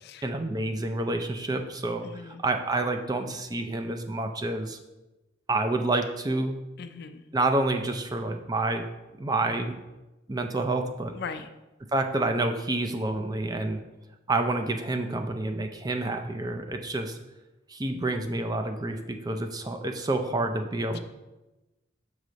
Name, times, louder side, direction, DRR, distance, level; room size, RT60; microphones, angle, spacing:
voice 1, 0.2-4.8 5.5-6.6 7.3-8.9 9.2-9.7 10.3-11.1 11.9-13.8 14.3-17.2 17.7-21.0, right 2 dB, 20° right, 5 dB, 0.4 m, -28 dB
voice 2, 2.0-2.4 6.8-7.2 11.1-11.5, left 5 dB, 55° left, 10 dB, 0.4 m, -39 dB
6.5 x 4.8 x 3.9 m, 1.1 s
head